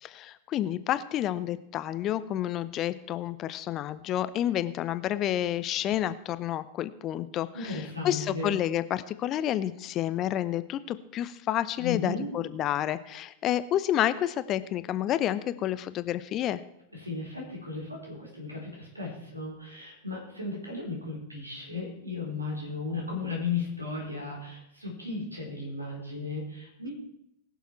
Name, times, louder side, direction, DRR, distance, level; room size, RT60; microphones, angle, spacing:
voice 1, 0.0-16.6, left 12 dB, 35° left, 14 dB, 0.7 m, -30 dB
voice 2, 7.5-8.6 11.8-12.3 16.9-26.9, left 4 dB, 85° right, -1 dB, 4.0 m, -35 dB
20.5 x 7.1 x 4.5 m, 0.81 s
figure-of-eight pair, 90°, 0 cm